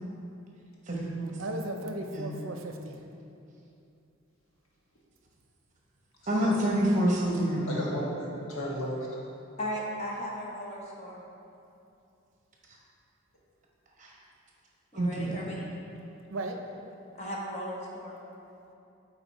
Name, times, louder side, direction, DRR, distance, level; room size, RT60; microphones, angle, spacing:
voice 1, 0.9-1.4 2.1-2.3 6.3-7.9 14.0-14.1 14.9-15.4, right 1 dB, 35° right, -2 dB, 1.0 m, -27 dB
voice 2, 1.4-3.0 16.3-16.6, right 1 dB, 70° right, 4 dB, 0.6 m, -36 dB
voice 3, 6.4-6.8 7.6-9.2, equal, 85° left, -5 dB, 1.4 m, -35 dB
voice 4, 9.6-11.2 14.9-15.6 17.2-18.2, equal, 30° left, -3 dB, 1.0 m, -36 dB
7.9 x 4.2 x 4.1 m, 2.7 s
head